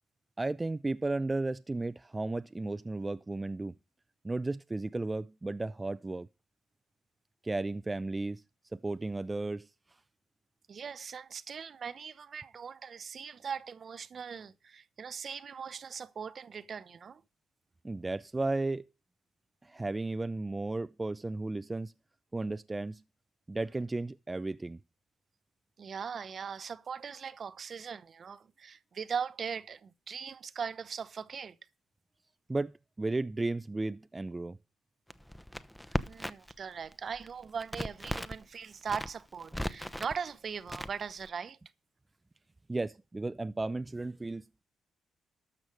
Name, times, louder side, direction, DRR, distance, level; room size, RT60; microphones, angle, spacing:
voice 1, 0.4-3.7 4.2-6.3 7.4-8.4 8.7-9.7 17.8-18.9 19.6-21.9 22.3-23.0 23.5-24.8 32.5-34.6 35.9-36.1 42.7-44.4, right 2 dB, 20° right, 0.5 m, -34 dB
voice 2, 10.7-17.2 25.8-31.6 36.1-41.6, right 6 dB, 55° right, 0.8 m, -40 dB
Crackle, 35.1-36.6 36.9-38.4 38.8-40.2 40.7-41.3, left 1 dB, 5° left, 0.8 m, -37 dB
12.5 x 6.4 x 5.3 m
supercardioid pair, 60°, 0 cm